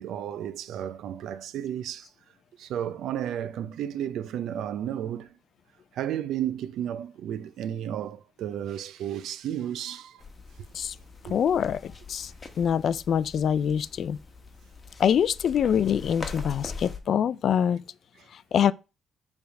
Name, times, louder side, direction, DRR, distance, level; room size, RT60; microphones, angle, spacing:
voice 1, 0.0-2.1 2.6-5.3 5.9-10.2 11.2-11.4, right 10 dB, 80° right, 0.5 m, -33 dB
sound 1, 10.2-17.0, left 4 dB, 30° left, 1.3 m, -42 dB
voice 2, 11.3-12.3 12.6-14.2 15.0-17.8 18.5-18.7, left 8 dB, 60° left, 0.4 m, -24 dB
6.9 x 3.5 x 6.3 m
cardioid pair, 90°, 0 cm